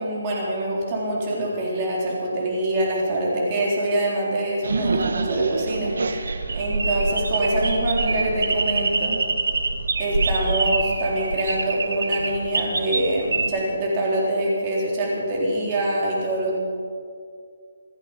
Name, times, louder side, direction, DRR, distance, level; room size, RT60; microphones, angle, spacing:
voice 1, 0.0-9.2 10.0-16.6, right 1 dB, 25° right, -3 dB, 3.9 m, -25 dB
sound 1, 4.6-13.5, right 3 dB, 65° right, 1.6 m, -25 dB
26.5 x 10.5 x 5.3 m, 2.2 s
hypercardioid pair, 170°, 0 cm